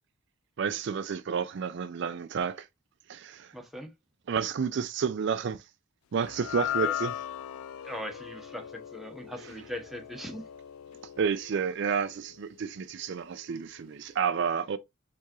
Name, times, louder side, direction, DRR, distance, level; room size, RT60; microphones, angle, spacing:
voice 1, 0.6-2.7 3.1-3.5 4.3-5.6 6.1-7.1 11.2-14.8, right 6 dB, 55° right, 0.4 m, -30 dB
voice 2, 3.5-3.9 6.6-6.9 7.8-10.4, equal, ahead, 0.9 m, -40 dB
sound 1, 6.2-12.6, left 12 dB, 80° left, 0.3 m, -38 dB
4.6 x 3.4 x 3.0 m
head